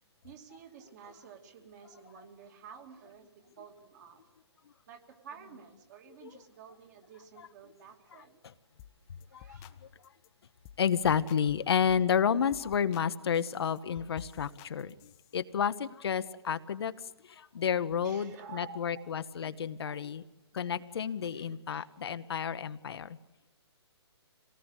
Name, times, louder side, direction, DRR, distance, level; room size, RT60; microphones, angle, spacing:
voice 1, 0.2-4.3 4.9-8.4 9.3-9.7 18.0-19.1 19.8-20.0 21.3-21.9, right 7 dB, 40° right, 4 dB, 2.6 m, -51 dB
sound 1, 8.8-9.0 9.2-9.8 10.0-10.3 10.6-10.8 11.1-12.1 12.5-13.1 13.3-15.4, left 11 dB, 20° left, 0.8 m, -53 dB
voice 2, 10.8-20.2 20.5-23.2, left 7 dB, 65° left, 11 dB, 0.9 m, -31 dB
25.0 x 18.0 x 8.2 m, 1.0 s
hypercardioid pair, 150°, 14 cm